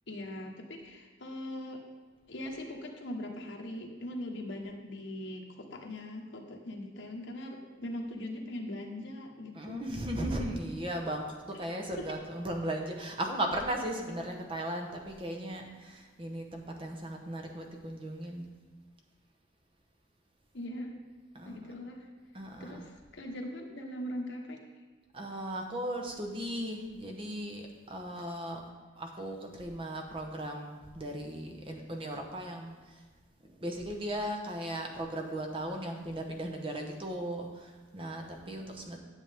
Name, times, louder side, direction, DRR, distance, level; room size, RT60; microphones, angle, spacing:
voice 1, 0.1-1.8 2.3-9.8 11.5-11.7 12.0-12.1 20.5-21.0 21.4-22.1 22.6-24.6, left 1 dB, 75° left, 1 dB, 1.2 m, -41 dB
voice 2, 9.5-18.5 21.3-21.7 22.3-22.9 25.1-28.6 29.0-33.0 33.6-39.0, right 1 dB, 25° right, 2 dB, 0.9 m, -37 dB
10.0 x 7.2 x 3.5 m, 1.3 s
head